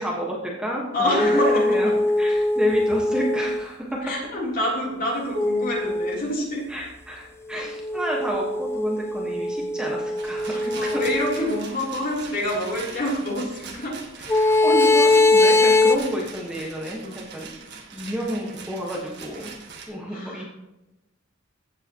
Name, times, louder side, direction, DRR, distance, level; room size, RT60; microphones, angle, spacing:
voice 1, 0.0-0.8 1.1-1.9 2.2-3.9 6.7-11.0 14.3-17.0 17.3-17.5 17.9-19.5 19.9-20.4, equal, 5° right, -3 dB, 1.4 m, -30 dB
voice 2, 0.9-1.9 4.0-6.6 10.4-14.0 17.0-17.3 19.9-20.5, left 1 dB, 45° left, -3 dB, 3.4 m, -27 dB
sound 1, 1.2-3.7 5.3-6.2 7.5-11.6 14.3-16.0, left 2 dB, 10° left, 0.4 m, -21 dB
Rattle, 10.2-19.9, right 5 dB, 55° right, 1.7 m, -42 dB
15.5 x 8.0 x 3.0 m, 0.98 s
head